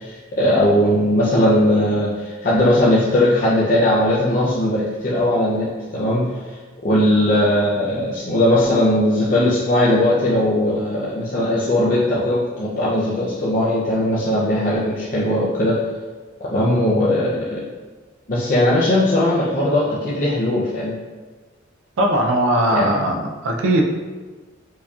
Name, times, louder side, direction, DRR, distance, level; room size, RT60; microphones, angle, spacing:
voice 1, 0.0-6.3 6.8-15.8 16.4-17.6 18.3-20.9 22.7-22.9, left 1 dB, 45° left, -8 dB, 0.5 m, -19 dB
voice 2, 22.0-23.8, right 1 dB, 80° right, 2 dB, 0.4 m, -19 dB
4.6 x 2.7 x 2.3 m, 1.3 s
head